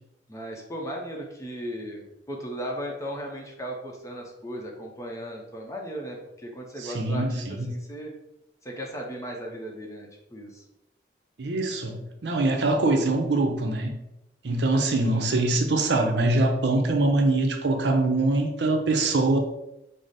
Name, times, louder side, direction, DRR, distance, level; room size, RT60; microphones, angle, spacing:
voice 1, 0.3-8.1 8.6-10.6, equal, 15° left, 0 dB, 0.6 m, -36 dB
voice 2, 6.8-7.7 11.4-13.9 14.4-19.4, right 2 dB, 75° right, 4 dB, 0.6 m, -23 dB
4.9 x 2.0 x 4.0 m, 0.88 s
head